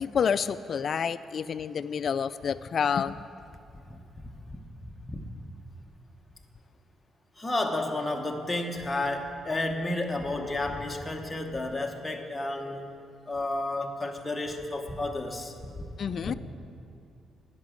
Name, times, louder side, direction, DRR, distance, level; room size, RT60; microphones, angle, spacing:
voice 1, 0.0-3.2 16.0-16.3, left 7 dB, 50° left, 15 dB, 0.3 m, -28 dB
voice 2, 3.9-4.3 4.8-5.3 7.4-13.0 13.3-15.9 16.2-16.3, left 2 dB, 15° left, 2 dB, 1.0 m, -32 dB
10.5 x 6.0 x 7.6 m, 2.5 s
cardioid pair, 90°, 0 cm